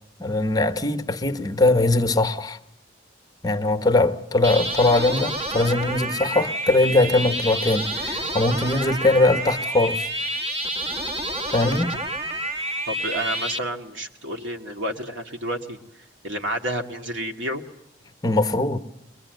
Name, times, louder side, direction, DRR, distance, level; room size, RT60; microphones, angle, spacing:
voice 1, 0.2-2.6 3.4-10.1 11.5-11.9 18.2-18.8, left 2 dB, 20° left, 1.0 m, -21 dB
sound 1, 4.4-13.6, right 1 dB, 30° right, 1.2 m, -29 dB
voice 2, 12.9-15.8 16.2-17.6, right 1 dB, 90° right, 2.1 m, -30 dB
22.5 x 22.0 x 9.2 m
head